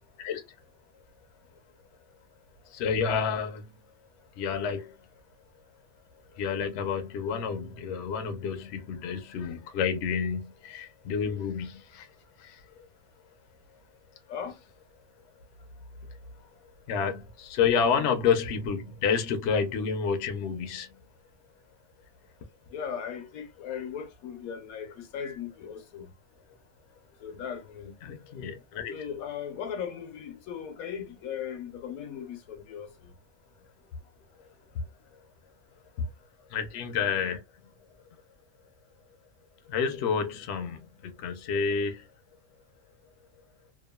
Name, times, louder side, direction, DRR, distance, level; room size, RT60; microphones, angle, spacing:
voice 1, 2.7-3.6 4.4-4.9 6.4-12.0 16.9-20.9 28.0-28.9 36.5-37.4 39.7-42.0, left 6 dB, 60° left, 0.8 m, -29 dB
voice 2, 14.3-14.6 22.7-26.1 27.2-27.9 28.9-33.1 36.0-36.1, left 7 dB, 80° left, 1.1 m, -37 dB
2.9 x 2.3 x 2.2 m
omnidirectional pair, 1.5 m